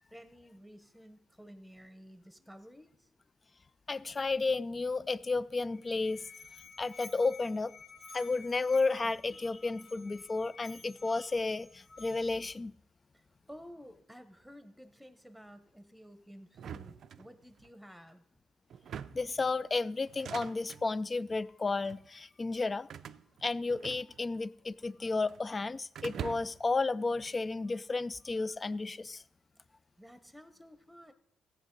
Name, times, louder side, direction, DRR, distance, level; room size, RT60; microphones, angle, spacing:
voice 1, 0.1-3.1 13.1-18.2 30.0-31.1, equal, ahead, 1.1 m, -53 dB
voice 2, 3.9-6.2 6.8-7.7 8.1-12.7 19.1-22.9 23.4-29.2, left 3 dB, 30° left, 0.4 m, -32 dB
Musical instrument, 5.7-12.5, left 4 dB, 60° left, 2.3 m, -53 dB
sound 1, 16.5-17.7 18.7-19.4 20.0-20.9 21.7-22.1 22.9-24.4 24.7-25.5 26.0-26.7, right 8 dB, 65° right, 0.4 m, -44 dB
15.5 x 8.0 x 3.9 m
cardioid pair, 90°, 0 cm